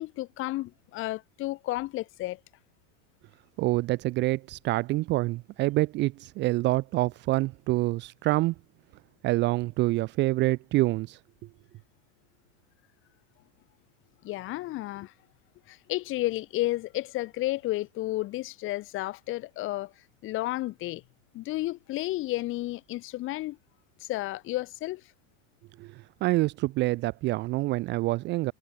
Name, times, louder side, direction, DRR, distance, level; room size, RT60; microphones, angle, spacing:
voice 1, 0.0-2.4 14.2-15.1 15.7-19.9 20.2-21.0 21.3-23.6 24.0-25.0, left 17 dB, 30° left, 2.4 m, -32 dB
voice 2, 3.6-8.5 9.2-11.2 25.8-28.5, right 19 dB, 25° right, 0.9 m, -26 dB
supercardioid pair, 170°, 40 cm